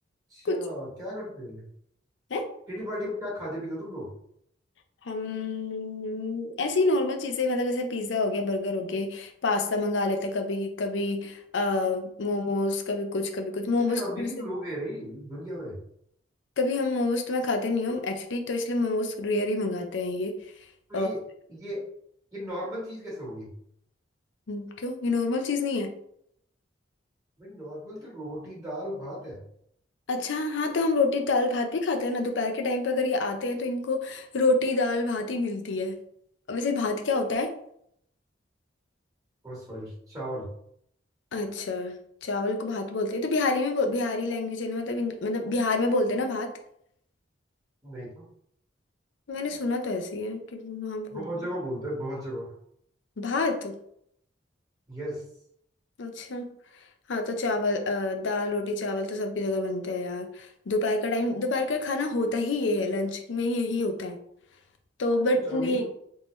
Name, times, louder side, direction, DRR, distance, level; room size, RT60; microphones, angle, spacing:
voice 1, 0.3-1.7 2.7-4.1 13.8-15.8 20.9-21.2 21.5-21.8 22.3-23.5 27.4-29.4 39.4-40.5 47.8-48.3 51.1-52.5 54.9-55.2 65.3-65.9, equal, 20° right, -7 dB, 1.4 m, -36 dB
voice 2, 5.0-14.3 16.6-20.4 20.9-21.1 24.5-26.0 30.1-36.0 36.5-37.5 41.3-46.5 49.3-51.2 53.2-53.8 56.0-56.5 57.1-64.2 65.0-65.9, left 2 dB, 70° left, 5 dB, 0.5 m, -28 dB
3.6 x 2.6 x 3.1 m, 0.71 s
head